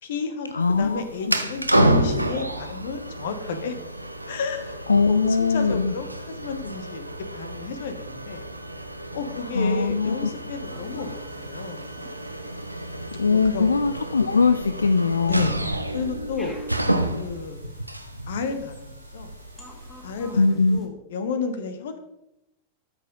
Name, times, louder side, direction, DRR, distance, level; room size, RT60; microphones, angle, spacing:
voice 1, 0.0-3.7 4.3-4.8 5.1-8.5 9.1-11.9 13.3-13.7 15.2-15.6 15.9-16.6 17.1-17.6 18.3-19.3 20.0-22.0, left 5 dB, 60° left, 9 dB, 1.2 m, -32 dB
voice 2, 0.5-1.4 4.9-5.9 9.5-10.3 13.2-15.5 20.4-20.8, left 4 dB, 75° left, 11 dB, 0.4 m, -21 dB
sound 1, 0.6-20.5, right 1 dB, 85° right, 0.6 m, -30 dB
sound 2, 10.6-20.9, left 1 dB, 10° left, 2.4 m, -53 dB
12.0 x 6.2 x 4.0 m, 0.88 s
figure-of-eight pair, 90°, 0 cm